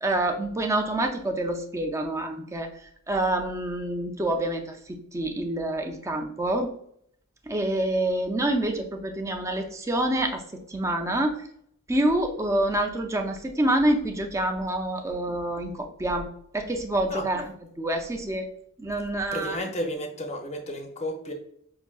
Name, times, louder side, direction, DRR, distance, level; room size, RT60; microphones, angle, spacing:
voice 1, 0.0-2.7 3.1-6.7 7.5-10.4 10.7-11.4 11.9-16.3 16.5-17.4 17.8-18.5 18.8-19.6, right 1 dB, 15° right, 4 dB, 0.4 m, -27 dB
voice 2, 19.3-21.3, equal, 30° left, 3 dB, 0.6 m, -32 dB
5.6 x 2.7 x 2.3 m, 0.68 s
head